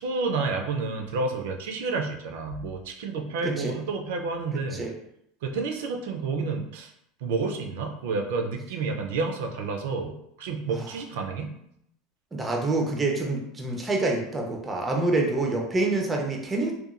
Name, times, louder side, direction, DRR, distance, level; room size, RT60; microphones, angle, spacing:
voice 1, 0.0-4.8 5.4-6.9 7.2-11.6, right 4 dB, 80° right, 4 dB, 0.4 m, -30 dB
voice 2, 3.4-3.7 4.7-4.9 12.3-16.7, right 2 dB, 15° right, 1 dB, 0.4 m, -26 dB
2.9 x 2.2 x 2.4 m, 0.75 s
supercardioid pair, 155°, 0 cm